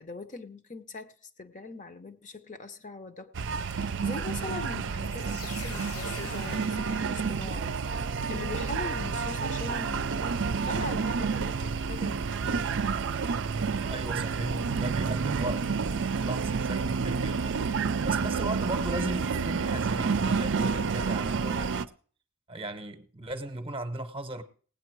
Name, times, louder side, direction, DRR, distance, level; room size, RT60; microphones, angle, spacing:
voice 1, 0.0-12.7, left 3 dB, 35° left, 0.8 m, -42 dB
sound 1, 3.3-21.9, right 5 dB, 60° right, 0.5 m, -29 dB
sound 2, 5.0-7.8, left 6 dB, 75° left, 0.7 m, -44 dB
voice 2, 13.9-21.8 22.5-24.4, right 1 dB, 25° right, 0.9 m, -37 dB
18.0 x 8.3 x 4.6 m
head